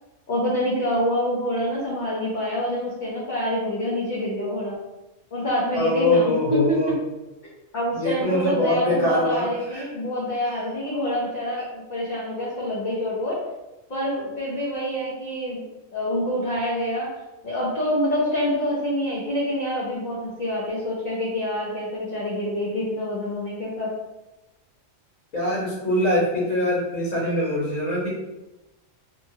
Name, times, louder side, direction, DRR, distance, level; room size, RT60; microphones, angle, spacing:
voice 1, 0.3-4.8 5.3-7.0 7.7-13.4 13.9-15.6 15.9-17.1 17.4-23.9, equal, 50° left, -7 dB, 0.7 m, -26 dB
voice 2, 5.7-6.9 7.9-9.4 9.7-9.8 25.3-28.1, left 1 dB, 80° left, -8 dB, 1.3 m, -23 dB
2.8 x 2.2 x 2.7 m, 1.0 s
omnidirectional pair, 1.4 m